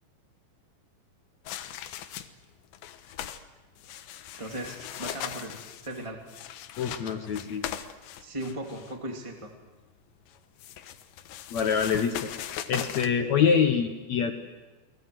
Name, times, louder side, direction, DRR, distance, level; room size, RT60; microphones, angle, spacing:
sound 1, 1.5-2.5 2.7-3.4 3.8-8.9 10.3-13.1, left 11 dB, 90° left, 3.4 m, -39 dB
voice 1, 4.4-6.2 8.2-9.5, right 1 dB, 10° right, 1 dB, 1.6 m, -37 dB
voice 2, 6.8-7.6 11.5-12.3 12.7-14.3, left 7 dB, 70° left, 6 dB, 1.7 m, -25 dB
30.0 x 21.0 x 7.8 m, 1.2 s
omnidirectional pair, 5.0 m